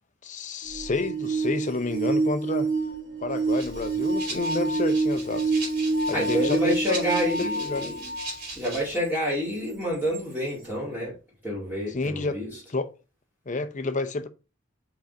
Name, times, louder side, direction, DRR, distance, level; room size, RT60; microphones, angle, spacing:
voice 1, 0.2-2.7 3.2-5.6 6.1-7.9 11.9-12.4 12.7-12.9 13.5-14.3, left 3 dB, 40° left, 0.7 m, -30 dB
sound 1, 0.7-8.3 9.0-9.1 10.1-10.2, right 3 dB, 75° right, 1.2 m, -27 dB
Rattle (instrument), 3.5-9.0, right 3 dB, 55° right, 3.3 m, -39 dB
voice 2, 6.1-8.1 8.6-11.1 11.4-12.5, equal, 10° right, 1.9 m, -28 dB
5.2 x 3.9 x 5.2 m
head